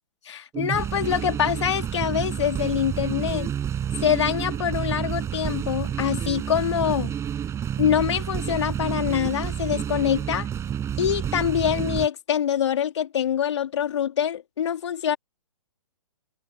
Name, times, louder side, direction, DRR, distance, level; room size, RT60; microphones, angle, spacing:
voice 1, 0.3-3.5 4.0-7.1 7.8-10.5 11.0-15.2, left 9 dB, 55° left, 3.2 m, -25 dB
sound 1, 0.5-12.1, right 9 dB, 15° right, 6.2 m, -29 dB
figure-of-eight pair, 125°, 17 cm